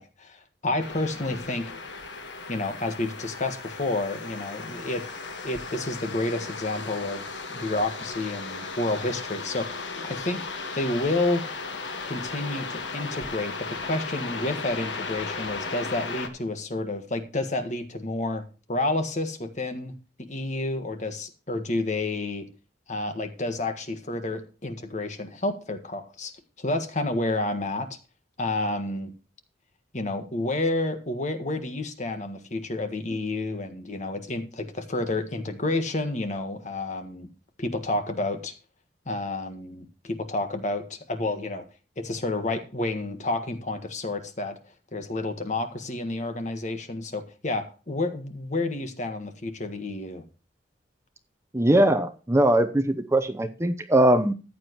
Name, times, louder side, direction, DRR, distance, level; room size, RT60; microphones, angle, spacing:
voice 1, 0.0-1.7 2.5-5.1 5.4-10.4 10.7-11.4 12.1-19.9 20.2-22.4 22.9-26.3 26.6-27.9 28.4-29.1 29.9-37.3 37.6-38.5 39.0-41.6 42.0-44.6 44.9-50.2, left 2 dB, 40° left, 8 dB, 1.6 m, -30 dB
sound 1, 0.8-16.3, left 4 dB, 75° left, 1.6 m, -36 dB
voice 2, 51.5-54.3, right 1 dB, 15° right, 9 dB, 0.7 m, -21 dB
14.5 x 9.1 x 3.0 m, 0.33 s
head